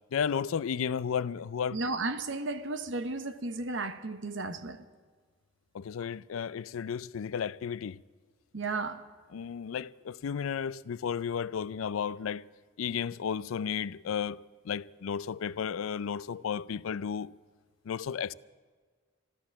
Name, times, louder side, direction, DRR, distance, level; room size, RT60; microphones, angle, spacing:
voice 1, 0.1-1.8 5.7-8.0 9.3-12.4 12.8-14.4 14.6-17.3 17.9-18.3, left 7 dB, 90° left, 0.4 m, -33 dB
voice 2, 1.7-4.9 8.5-9.0, right 3 dB, 65° right, 1.0 m, -34 dB
13.5 x 13.5 x 7.2 m
head